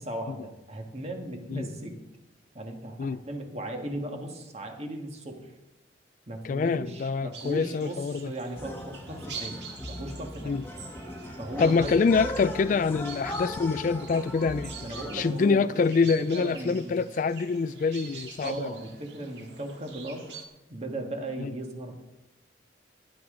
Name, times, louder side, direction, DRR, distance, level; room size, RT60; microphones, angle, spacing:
voice 1, 0.0-2.0 2.5-5.5 6.3-9.6 9.9-10.6 11.4-12.0 14.8-15.6 16.2-17.0 18.4-20.3 20.7-21.9, right 1 dB, 35° right, 1.7 m, -37 dB
voice 2, 6.4-8.3 10.5-10.6 11.6-14.7 15.1-18.7 21.4-21.5, left 4 dB, 45° left, 0.3 m, -25 dB
sound 1, 7.3-20.4, right 6 dB, 80° right, 1.8 m, -46 dB
sound 2, 8.6-15.3, left 1 dB, 15° left, 1.1 m, -38 dB
15.5 x 10.0 x 3.8 m
head